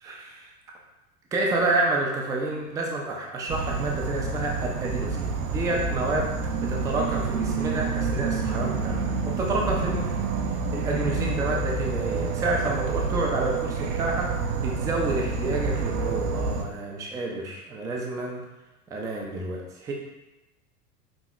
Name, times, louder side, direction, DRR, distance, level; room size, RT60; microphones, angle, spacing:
voice 1, 0.0-0.5 1.3-10.1 10.7-18.4 18.9-19.9, right 2 dB, 10° right, -1 dB, 0.3 m, -29 dB
Insect / Frog, 3.5-16.6, right 4 dB, 60° right, 0.7 m, -28 dB
6.2 x 2.9 x 2.4 m, 1.0 s
hypercardioid pair, 100°, 46 cm